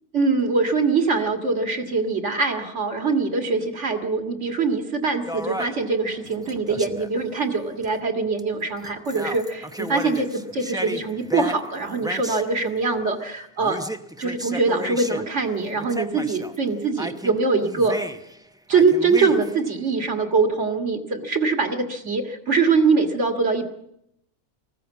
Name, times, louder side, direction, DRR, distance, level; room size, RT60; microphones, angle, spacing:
voice 1, 0.1-13.8 14.2-18.0 18.7-23.7, right 4 dB, 50° right, 5 dB, 2.2 m, -23 dB
sound 1, 5.3-7.2 7.8-7.9 8.4-8.5 8.8-12.5 13.6-15.3 15.6-16.6 17.0-18.4 18.7-19.7, equal, 5° right, 0.6 m, -34 dB
19.5 x 15.5 x 8.4 m, 0.79 s
omnidirectional pair, 1.6 m